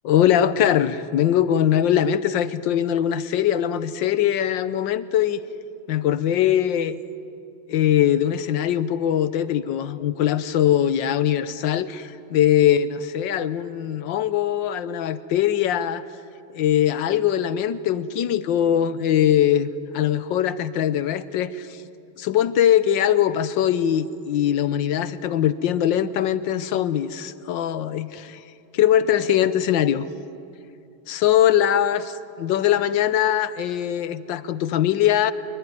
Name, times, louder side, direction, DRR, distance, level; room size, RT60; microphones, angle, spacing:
voice 1, 0.0-5.4 5.9-7.0 7.7-16.0 16.5-19.7 19.9-21.8 22.2-28.4 28.7-30.1 31.1-35.3, left 10 dB, 70° left, 14 dB, 1.4 m, -21 dB
24.5 x 23.0 x 9.8 m, 2.6 s
omnidirectional pair, 2.3 m